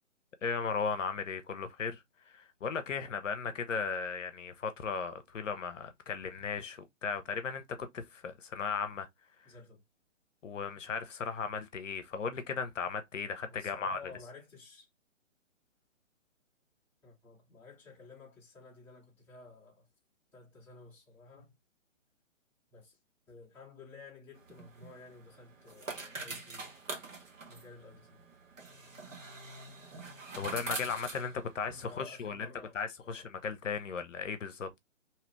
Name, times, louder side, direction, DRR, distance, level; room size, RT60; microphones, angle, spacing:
voice 1, 0.4-9.1 10.4-14.0 30.4-32.5 32.7-34.8, left 5 dB, 70° left, 0.7 m, -36 dB
voice 2, 9.4-9.8 13.5-14.9 17.0-19.9 20.3-21.6 22.7-23.0 23.3-26.7 27.5-28.2 31.7-32.7 33.0-33.3, left 3 dB, 5° left, 0.8 m, -53 dB
sound 1, 24.3-32.0, right 3 dB, 75° right, 1.1 m, -44 dB
2.9 x 2.4 x 3.0 m
figure-of-eight pair, 135°, 39 cm